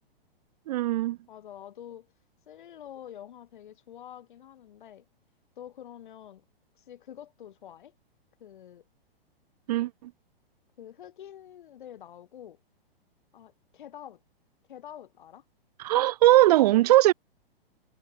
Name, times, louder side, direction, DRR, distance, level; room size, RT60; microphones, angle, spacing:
voice 1, 0.7-1.2 9.7-10.1 15.8-17.1, right 15 dB, 40° right, 1.1 m, -20 dB
voice 2, 1.3-2.1 2.5-5.1 5.6-6.4 6.8-7.9 8.4-8.9 10.8-12.6 13.3-14.2 14.7-15.4, left 10 dB, 55° left, 3.5 m, -46 dB
figure-of-eight pair, 110°, 30 cm